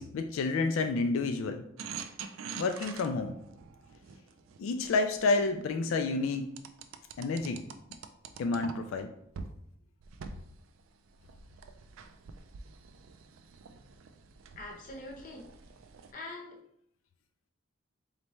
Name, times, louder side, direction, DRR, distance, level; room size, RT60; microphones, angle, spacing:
voice 1, 0.0-1.6 2.6-3.4 4.6-6.5 7.2-7.6 8.4-9.1, left 3 dB, 80° left, 6 dB, 0.3 m, -29 dB
sound 1, 1.8-5.7 6.6-9.0 9.3-9.5 10.0-16.1, right 5 dB, 80° right, 0.4 m, -46 dB
voice 2, 14.6-15.5 16.1-16.6, left 2 dB, 40° left, 1 dB, 0.8 m, -43 dB
4.1 x 3.3 x 3.1 m, 0.71 s
head